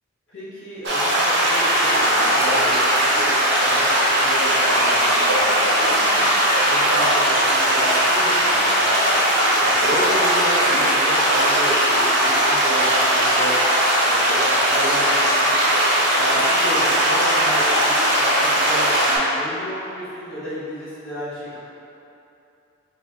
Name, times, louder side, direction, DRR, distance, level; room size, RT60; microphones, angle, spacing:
voice 1, 0.3-6.3 6.6-13.6 14.0-15.6 16.2-21.6, equal, 50° left, -11 dB, 1.1 m, -32 dB
sound 1, 0.8-19.2, right 1 dB, 50° right, 0.8 m, -18 dB
5.6 x 2.5 x 2.8 m, 2.8 s
head